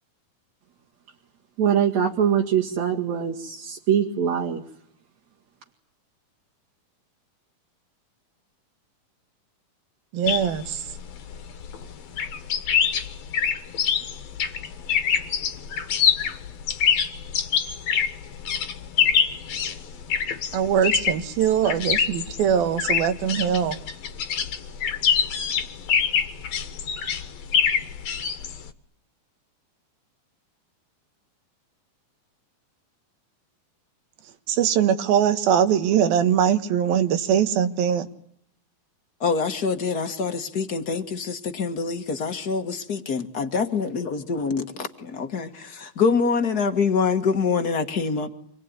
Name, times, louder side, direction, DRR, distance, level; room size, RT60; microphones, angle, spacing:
voice 1, 1.6-4.6, right 8 dB, 55° right, 1 dB, 3.1 m, -23 dB
voice 2, 10.1-10.8 20.5-23.8 34.5-38.1, right 9 dB, 85° right, 10 dB, 3.3 m, -22 dB
sound 1, 10.3-28.7, left 7 dB, 55° left, 2.3 m, -25 dB
voice 3, 39.2-48.3, left 5 dB, 40° left, 7 dB, 1.4 m, -25 dB
26.5 x 21.0 x 9.6 m, 0.68 s
omnidirectional pair, 4.1 m